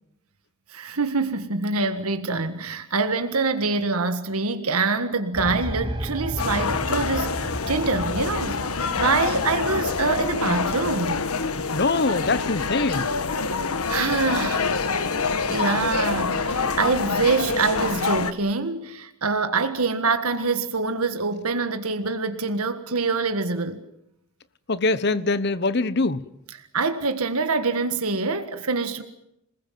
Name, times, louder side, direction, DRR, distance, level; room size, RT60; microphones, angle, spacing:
voice 1, 0.7-8.6 9.0-11.2 13.9-14.7 15.5-23.8 26.7-29.0, right 4 dB, 90° right, 1.7 m, -25 dB
sound 1, 5.3-11.1, equal, 25° right, 2.0 m, -34 dB
sound 2, 6.4-18.3, left 4 dB, 90° left, 1.5 m, -26 dB
voice 2, 11.7-13.1 24.7-26.2, left 3 dB, 50° left, 1.0 m, -23 dB
27.5 x 20.0 x 7.6 m
head